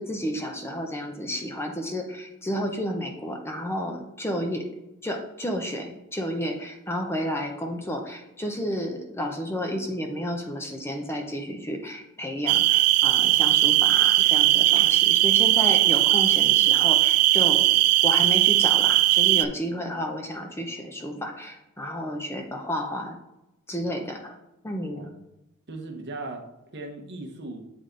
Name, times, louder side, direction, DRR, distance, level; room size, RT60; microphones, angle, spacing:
voice 1, 0.0-4.6 5.0-17.6 18.0-23.2 23.7-24.3 24.6-25.1, equal, 10° left, 2 dB, 0.6 m, -31 dB
sound 1, 12.5-19.5, right 16 dB, 80° right, 0.3 m, -19 dB
voice 2, 24.8-25.2 25.7-26.4 26.7-27.6, right 2 dB, 55° right, 2 dB, 0.9 m, -38 dB
8.3 x 3.4 x 3.8 m, 0.92 s
head